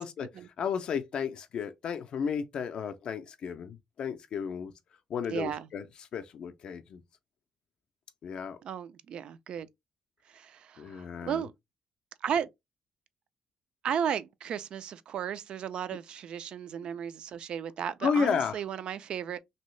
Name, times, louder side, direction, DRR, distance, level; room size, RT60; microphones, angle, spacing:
voice 1, 0.6-4.7 5.1-5.8 6.1-7.0 8.2-8.6 10.8-11.4 18.0-18.6, left 6 dB, 50° left, 0.4 m, -32 dB
voice 2, 5.3-5.7 8.6-9.7 10.3-11.5 12.2-12.5 13.8-19.4, right 8 dB, 50° right, 0.3 m, -34 dB
3.0 x 2.7 x 3.1 m
cardioid pair, 170°, 2 cm